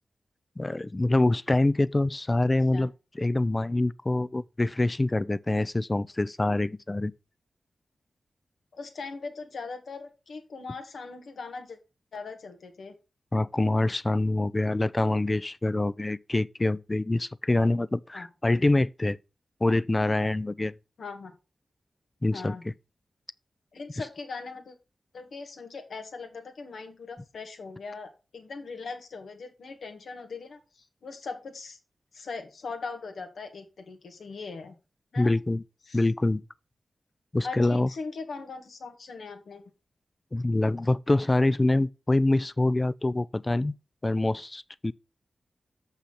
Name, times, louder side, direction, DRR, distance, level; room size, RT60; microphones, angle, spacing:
voice 1, 0.6-2.9 3.2-7.1 13.3-19.2 19.6-20.7 22.2-22.6 35.2-35.6 35.9-36.4 37.3-37.9 40.3-43.7 44.0-44.9, left 2 dB, 30° left, 0.5 m, -25 dB
voice 2, 8.7-11.8 12.1-13.0 18.1-18.3 21.0-21.3 22.3-22.6 23.7-24.8 25.1-31.8 32.1-34.7 35.1-35.3 35.9-36.0 37.4-39.6, left 4 dB, 80° left, 1.9 m, -40 dB
7.0 x 5.7 x 5.8 m
cardioid pair, 50°, 0 cm